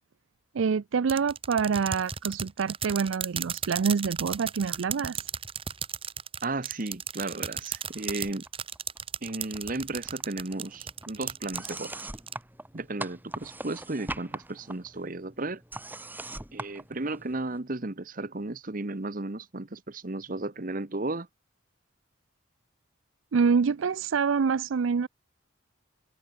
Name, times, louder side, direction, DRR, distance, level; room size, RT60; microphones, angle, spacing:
voice 1, 0.5-5.3 23.3-25.1, right 5 dB, 75° right, 0.4 m, -26 dB
sound 1, 1.1-12.3, right 7 dB, 25° right, 2.2 m, -35 dB
voice 2, 6.4-8.4 9.2-12.0 12.7-15.6 16.5-21.3, right 2 dB, 45° right, 1.2 m, -34 dB
sound 2, 7.7-8.5 8.7-9.8 10.0-17.6, right 2 dB, 10° right, 2.6 m, -42 dB
head